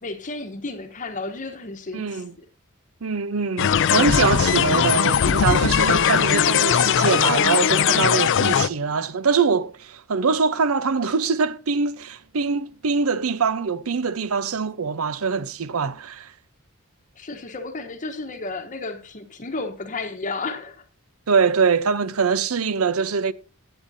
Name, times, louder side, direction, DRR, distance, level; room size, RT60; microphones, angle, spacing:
voice 1, 0.0-2.5 17.2-20.8, left 3 dB, 40° left, 1.0 m, -33 dB
voice 2, 1.9-2.3 3.0-16.3 21.3-23.3, right 5 dB, 80° right, 0.7 m, -23 dB
sound 1, 3.6-8.7, left 8 dB, 60° left, 0.4 m, -19 dB
15.5 x 8.1 x 2.7 m
head